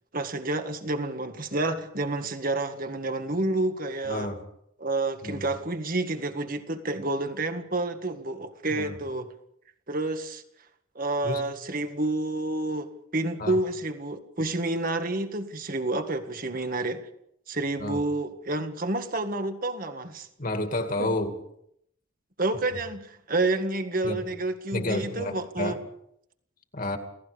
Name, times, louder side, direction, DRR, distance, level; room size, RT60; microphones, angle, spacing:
voice 1, 0.1-4.3 4.8-9.3 9.9-10.4 11.0-17.1 17.5-20.3 21.0-21.1 22.4-25.8, right 2 dB, 45° right, 1.8 m, -29 dB
voice 2, 4.0-4.4 5.2-5.5 8.7-8.9 11.2-11.4 13.4-13.6 17.8-18.0 20.4-21.3 24.0-24.2 24.7-25.8 26.7-27.0, left 1 dB, 40° left, 2.4 m, -30 dB
29.0 x 17.5 x 5.1 m
head